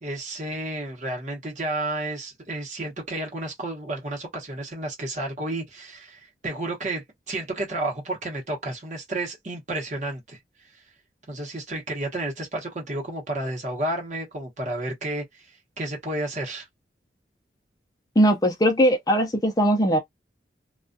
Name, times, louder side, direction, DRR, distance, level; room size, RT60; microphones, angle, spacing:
voice 1, 0.0-10.4 10.7-10.8 11.3-15.5 15.8-16.7, right 2 dB, 40° right, 0.9 m, -31 dB
voice 2, 18.2-20.0, equal, 20° left, 0.4 m, -20 dB
2.3 x 2.2 x 2.5 m
head